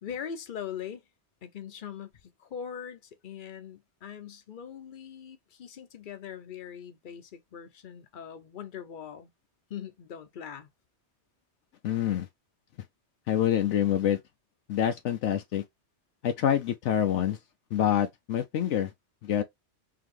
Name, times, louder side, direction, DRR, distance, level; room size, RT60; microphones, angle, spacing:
voice 1, 0.0-1.0 1.4-2.1 2.4-9.3 9.7-10.7, left 8 dB, 50° left, 0.8 m, -41 dB
voice 2, 11.8-12.3 13.3-14.2 14.7-15.6 16.2-17.4 17.7-18.9 19.2-19.4, left 10 dB, 80° left, 0.9 m, -26 dB
3.9 x 2.8 x 3.2 m
omnidirectional pair, 1.2 m